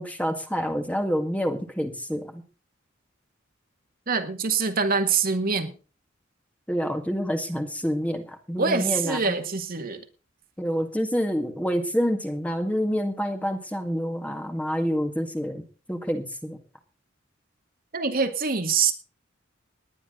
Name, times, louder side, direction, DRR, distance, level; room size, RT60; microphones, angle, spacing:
voice 1, 0.0-2.4 6.7-9.4 10.6-16.6, equal, 5° left, 5 dB, 1.9 m, -28 dB
voice 2, 4.1-5.7 8.6-10.0 17.9-18.9, right 5 dB, 45° right, 6 dB, 1.8 m, -24 dB
19.5 x 10.0 x 3.9 m, 0.35 s
head